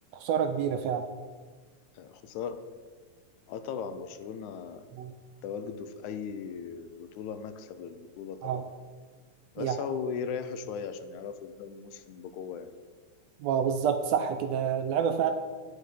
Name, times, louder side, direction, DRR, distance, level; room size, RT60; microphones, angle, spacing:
voice 1, 0.1-1.0 5.0-5.1 8.4-8.6 9.6-9.8 13.4-15.3, right 8 dB, 75° right, 7 dB, 1.6 m, -28 dB
voice 2, 1.9-2.6 3.5-4.9 5.4-8.7 9.6-12.7, left 6 dB, 80° left, 10 dB, 2.1 m, -38 dB
9.8 x 8.4 x 5.0 m, 1.5 s
omnidirectional pair, 3.4 m